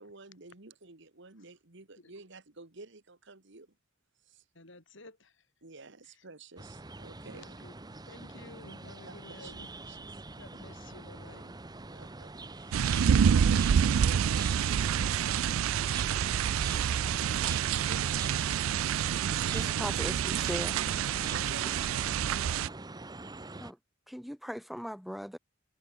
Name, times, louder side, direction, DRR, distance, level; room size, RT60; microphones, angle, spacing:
voice 1, 0.0-3.7 4.2-4.4 5.6-7.5 9.0-9.1 9.4-9.5 9.8-10.2 11.9-15.7 17.8-18.6 21.3-22.6, right 3 dB, 60° right, 1.9 m, -50 dB
voice 2, 4.5-5.5 6.2-6.3 7.2-9.7 10.4-11.6, left 2 dB, 65° left, 5.4 m, -52 dB
sound 1, 6.6-23.7, right 2 dB, 20° right, 1.1 m, -45 dB
sound 2, 12.7-22.7, right 8 dB, 85° right, 0.4 m, -27 dB
voice 3, 19.5-20.8 23.6-23.8 24.1-25.4, equal, ahead, 1.7 m, -38 dB
head